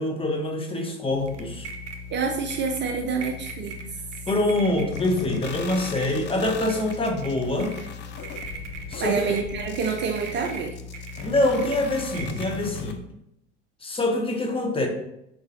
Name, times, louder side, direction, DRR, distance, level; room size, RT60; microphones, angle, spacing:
voice 1, 0.0-1.7 4.3-7.7 8.9-9.2 11.2-13.0 13.8-14.9, left 1 dB, 15° left, 2 dB, 0.9 m, -25 dB
sound 1, 1.1-13.0, left 1 dB, 90° right, 0.6 m, -39 dB
voice 2, 2.1-3.8 9.0-10.8, right 5 dB, 30° right, 2 dB, 0.5 m, -27 dB
sound 2, 4.9-12.9, left 6 dB, 30° left, 0.5 m, -38 dB
4.6 x 3.9 x 2.7 m, 0.81 s
figure-of-eight pair, 70°, 35 cm